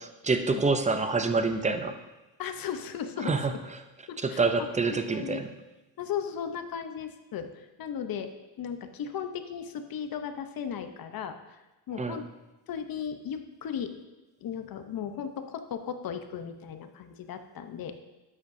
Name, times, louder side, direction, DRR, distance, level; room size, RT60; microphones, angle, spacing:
voice 1, 0.0-2.0 3.2-3.5 4.2-5.5 12.0-12.2, right 4 dB, 15° right, 8 dB, 0.6 m, -27 dB
voice 2, 2.4-3.3 4.1-5.4 6.0-8.3 8.6-11.6 11.9-12.2 12.7-13.9 14.4-17.9, left 8 dB, 50° left, 8 dB, 0.9 m, -36 dB
11.5 x 8.4 x 2.7 m, 1.1 s
cardioid pair, 110°, 46 cm